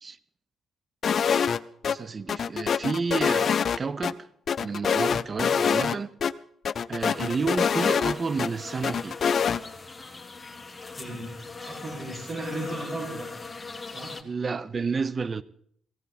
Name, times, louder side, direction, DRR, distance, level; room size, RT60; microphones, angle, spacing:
sound 1, 1.0-1.6 1.8-2.0 2.3-4.1 4.5-6.0 6.2-6.3 6.6-8.5 8.8-9.6, left 7 dB, 50° left, 0.5 m, -24 dB
voice 1, 1.8-4.3 4.6-6.1 6.9-9.2 14.2-15.4, right 4 dB, 35° right, 0.7 m, -30 dB
sound 2, 7.0-14.2, left 4 dB, 20° left, 1.5 m, -40 dB
voice 2, 11.0-11.3 11.6-13.3 13.9-14.2, right 2 dB, 50° right, 6.5 m, -35 dB
16.5 x 16.0 x 4.2 m
cardioid pair, 90°, 0 cm